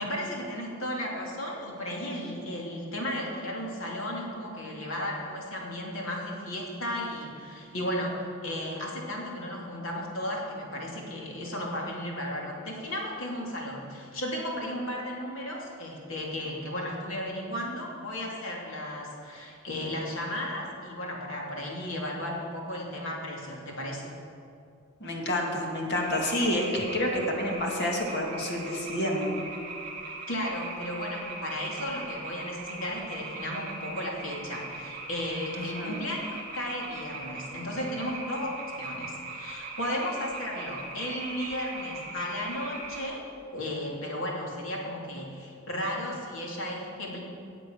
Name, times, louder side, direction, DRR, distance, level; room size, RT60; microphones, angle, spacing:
voice 1, 0.0-24.1 30.1-43.2 43.5-47.2, left 1 dB, 75° left, -2 dB, 2.9 m, -34 dB
voice 2, 25.0-29.3 35.5-35.9, left 1 dB, 55° left, 0 dB, 2.3 m, -29 dB
sound 1, 25.9-43.0, right 3 dB, 40° right, 2.0 m, -40 dB
18.5 x 7.5 x 6.5 m, 2.5 s
head